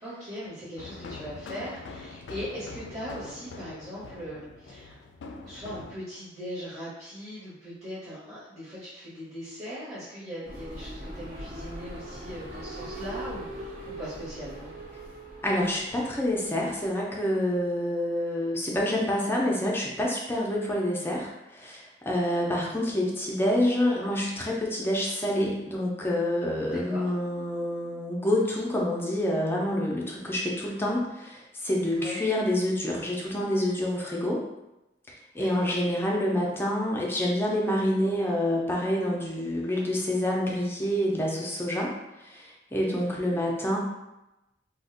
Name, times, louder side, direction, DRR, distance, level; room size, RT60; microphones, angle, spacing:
voice 1, 0.0-5.0 5.4-14.7 26.7-27.1 31.9-32.2 35.4-35.8 42.7-43.2, equal, 35° right, -9 dB, 1.0 m, -40 dB
sound 1, 0.8-6.0, left 3 dB, 75° left, 0.3 m, -43 dB
sound 2, 10.4-17.0, right 1 dB, 55° right, 0.6 m, -41 dB
voice 2, 15.4-34.4 35.3-41.9 42.2-43.8, left 1 dB, 15° left, -2 dB, 0.5 m, -27 dB
2.5 x 2.1 x 3.7 m, 0.94 s
head